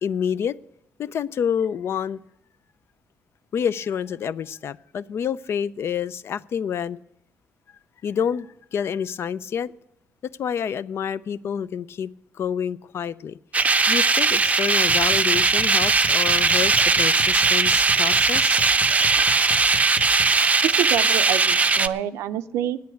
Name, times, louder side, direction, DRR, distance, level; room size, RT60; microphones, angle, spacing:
voice 1, 0.0-0.6 1.0-2.2 3.5-7.0 8.0-9.7 10.4-12.1 12.3-13.4 13.9-18.6, left 8 dB, 60° left, 0.4 m, -28 dB
sound 1, 13.5-21.9, right 4 dB, 30° right, 0.5 m, -19 dB
sound 2, 14.9-20.4, left 3 dB, 40° left, 1.0 m, -39 dB
voice 2, 20.6-22.8, right 11 dB, 85° right, 0.5 m, -27 dB
9.5 x 8.5 x 9.0 m
cardioid pair, 75°, 5 cm